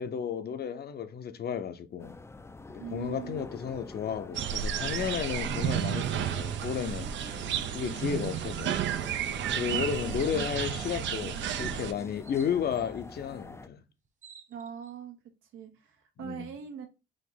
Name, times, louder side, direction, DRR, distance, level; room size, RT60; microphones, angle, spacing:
voice 1, 0.0-2.2 2.7-8.8 9.5-13.8 16.2-16.6, left 7 dB, 55° left, 0.7 m, -33 dB
sound 1, 2.0-13.7, left 3 dB, 15° left, 0.4 m, -46 dB
voice 2, 2.8-3.5 7.8-8.0 9.7-9.9 14.5-15.2 15.5-16.9, right 8 dB, 85° right, 1.2 m, -41 dB
sound 2, 4.3-11.9, right 9 dB, 70° right, 0.5 m, -32 dB
sound 3, 12.2-12.5 13.7-13.8 14.0-14.9, right 5 dB, 40° right, 0.9 m, -54 dB
4.9 x 2.6 x 3.9 m
cardioid pair, 90°, 20 cm